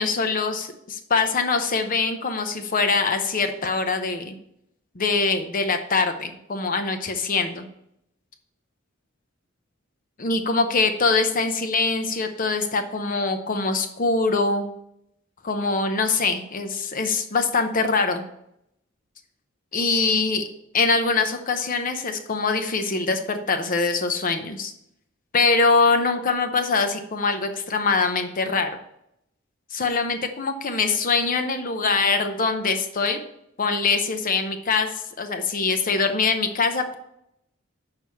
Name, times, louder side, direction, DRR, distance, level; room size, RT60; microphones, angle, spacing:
voice 1, 0.0-4.3 5.0-7.7 10.2-14.7 15.4-18.2 19.7-20.4 20.7-24.7 25.3-28.7 29.7-33.2 33.6-37.0, left 4 dB, 40° left, 7 dB, 0.7 m, -23 dB
6.5 x 4.8 x 6.9 m, 0.77 s
head